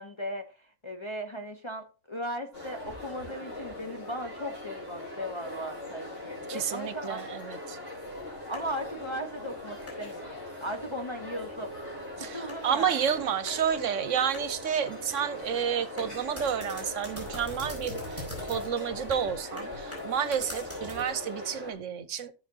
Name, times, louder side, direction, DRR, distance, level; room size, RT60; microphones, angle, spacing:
voice 1, 0.0-7.2 8.5-11.7 12.2-13.0, equal, 25° left, 0.7 m, -37 dB
sound 1, 2.5-21.7, left 1 dB, 45° left, 5.0 m, -40 dB
voice 2, 6.5-7.8 12.2-22.3, right 8 dB, 70° right, 1.1 m, -30 dB
sound 2, 8.0-21.2, equal, 10° left, 5.1 m, -46 dB
15.0 x 6.5 x 2.8 m
omnidirectional pair, 1.4 m